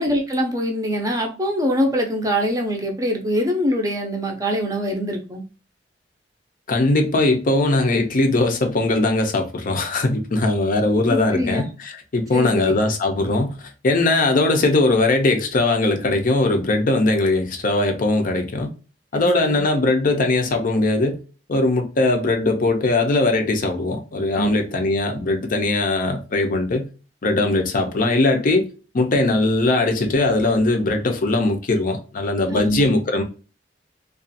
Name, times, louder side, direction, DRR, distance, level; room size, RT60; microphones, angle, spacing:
voice 1, 0.0-5.4 11.1-11.6 12.3-12.7 19.1-19.6 24.4-24.5 32.5-32.9, equal, 20° right, 0.5 m, -23 dB
voice 2, 6.7-13.5 13.8-18.7 19.1-21.2 21.5-26.9 27.2-28.7 28.9-33.2, left 2 dB, 50° left, 0.5 m, -20 dB
2.5 x 2.3 x 2.5 m
head